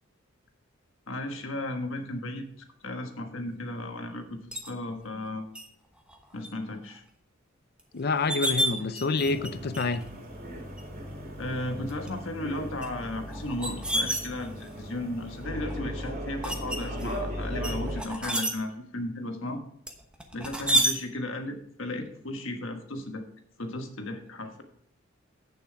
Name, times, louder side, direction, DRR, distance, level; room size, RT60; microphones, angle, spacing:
voice 1, 1.1-2.5 2.8-5.4 6.3-7.0 11.3-19.6 20.3-23.2 23.6-24.6, left 1 dB, 70° left, 1.4 m, -35 dB
sound 1, 4.5-4.7 5.5-5.7 6.1-6.5 6.9-7.0 7.8-7.9 8.1-9.5 9.7-10.1 10.8-10.9 11.7-12.1 12.8-14.8 15.4-15.8 16.4-17.1 17.6-18.5 19.9-20.9, equal, 5° right, 1.1 m, -29 dB
voice 2, 7.9-10.1, left 3 dB, 50° left, 0.6 m, -27 dB
sound 2, 9.2-18.0, equal, 45° right, 2.8 m, -37 dB
8.6 x 7.0 x 4.7 m
head